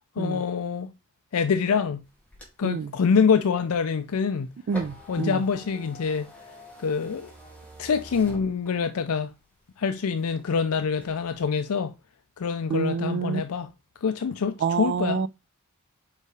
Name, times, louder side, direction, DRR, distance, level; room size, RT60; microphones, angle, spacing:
voice 1, 0.2-0.9 1.3-2.0 2.6-4.5 5.1-6.3 6.8-7.3 7.8-9.3 9.8-11.9 12.4-13.7 14.0-15.2, left 6 dB, 80° left, 0.5 m, -25 dB
sound 1, 2.0-9.1 9.6-10.5 10.9-11.4, equal, 5° left, 2.4 m, -46 dB
voice 2, 4.7-5.4 12.7-13.4 14.6-15.3, right 6 dB, 50° right, 0.3 m, -27 dB
5.4 x 4.8 x 4.6 m
head